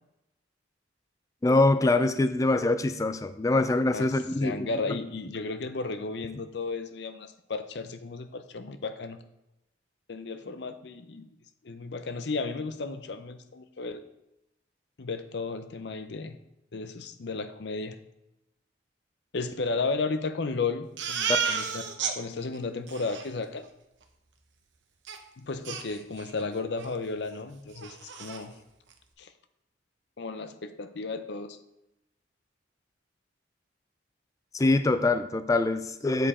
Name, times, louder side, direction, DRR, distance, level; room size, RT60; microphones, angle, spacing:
voice 1, 1.4-4.7 34.5-36.3, left 2 dB, 15° left, 11 dB, 0.3 m, -24 dB
voice 2, 4.4-9.2 10.1-11.3 11.6-14.0 15.0-16.4 16.7-18.0 19.3-21.8 22.2-23.7 25.4-28.5 29.2-29.3 30.2-31.6, left 3 dB, 60° left, 10 dB, 0.6 m, -34 dB
Crying sobbing, 21.0-22.1 22.5-22.6 22.9-23.3 25.1-25.2 25.6-26.4 26.8-27.0 27.3-27.4 27.7-28.4, right 6 dB, 70° right, 0.9 m, -32 dB
7.7 x 4.9 x 4.2 m, 0.89 s
head